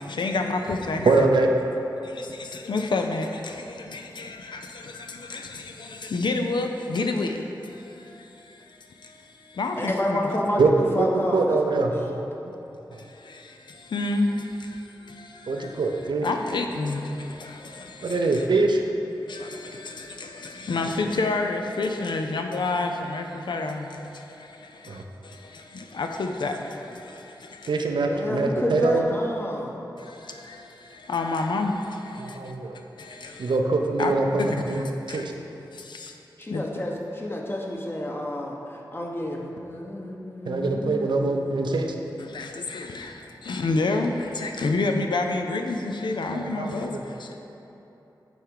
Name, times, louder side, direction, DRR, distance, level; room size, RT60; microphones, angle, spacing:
voice 1, 0.0-1.2 2.0-10.4 12.9-18.5 19.3-27.8 30.0-32.5 33.0-33.6 34.0-34.1 34.4-35.3 35.7-36.2 36.5-36.6 42.2-47.4, left 3 dB, 75° left, 4 dB, 0.5 m, -30 dB
voice 2, 1.0-1.5 10.6-11.1 11.3-12.2 12.9-13.0 15.5-16.3 18.0-18.8 24.9-25.0 27.7-29.1 32.2-32.8 33.4-35.3 40.5-41.9 46.3-47.0, right 3 dB, 75° right, 3 dB, 0.6 m, -23 dB
voice 3, 9.8-12.2 28.1-29.8 36.4-41.8, left 1 dB, 30° left, -1 dB, 1.0 m, -30 dB
9.2 x 3.5 x 4.8 m, 3.0 s
cardioid pair, 50°, 8 cm